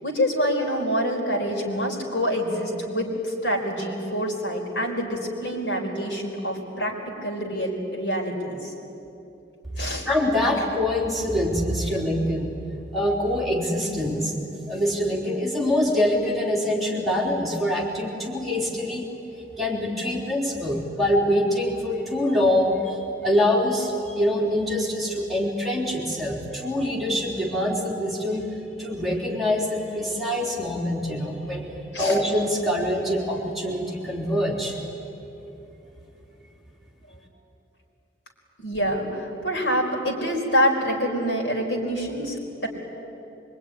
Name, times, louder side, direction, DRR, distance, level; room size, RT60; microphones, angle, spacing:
voice 1, 0.0-8.7 9.8-10.1 10.5-10.6 11.9-12.0 31.9-32.2 37.1-37.2 38.6-42.7, equal, 70° left, 0 dB, 4.7 m, -26 dB
voice 2, 10.1-12.5 12.9-14.3 14.7-19.0 19.6-23.0 23.2-28.5 28.8-34.8, left 1 dB, ahead, -5 dB, 3.6 m, -24 dB
24.0 x 23.5 x 9.9 m, 3.0 s
head